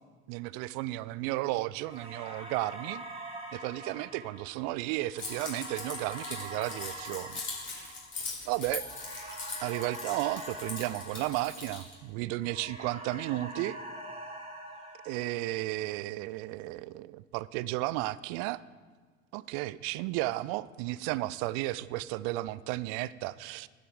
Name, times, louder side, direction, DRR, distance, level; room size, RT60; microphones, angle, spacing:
voice 1, 0.3-3.0 3.5-7.4 7.7-7.9 8.4-8.9 9.6-13.8 15.0-18.6 19.3-23.7, right 18 dB, 45° right, 19 dB, 0.4 m, -33 dB
sound 1, 1.8-12.0 12.4-15.8, right 1 dB, 15° right, 2.3 m, -44 dB
Keys jangling, 5.2-11.9, left 4 dB, 30° left, 3.5 m, -41 dB
12.5 x 7.6 x 4.9 m, 1.5 s
figure-of-eight pair, 70°, 36 cm